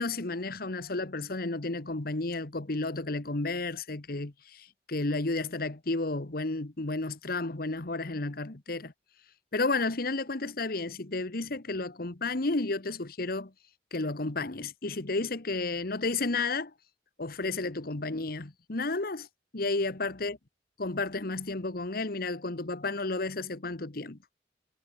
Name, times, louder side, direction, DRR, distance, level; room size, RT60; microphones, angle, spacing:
voice 1, 0.0-8.9 9.5-13.5 13.9-16.7 17.2-19.3 19.5-20.4 20.8-24.4, left 3 dB, 55° left, 1.4 m, -32 dB
head